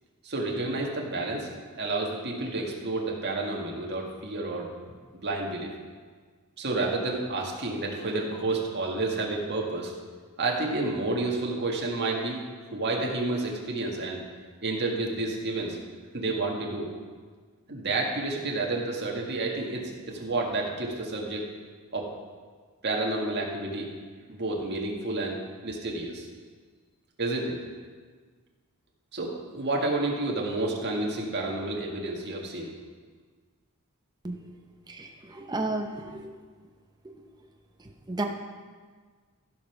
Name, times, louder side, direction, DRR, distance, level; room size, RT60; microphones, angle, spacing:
voice 1, 0.2-1.5 1.8-4.7 5.1-5.7 6.6-9.9 10.4-12.4 12.7-14.2 14.6-15.8 16.1-16.9 17.7-21.4 21.9-22.1 22.8-23.9 24.3-26.3 27.2-27.6 29.1-32.7, right 2 dB, 50° right, -1 dB, 1.8 m, -30 dB
voice 2, 34.9-36.2 38.1-38.2, right 2 dB, 20° right, 3 dB, 0.8 m, -32 dB
15.5 x 5.5 x 5.9 m, 1.5 s
head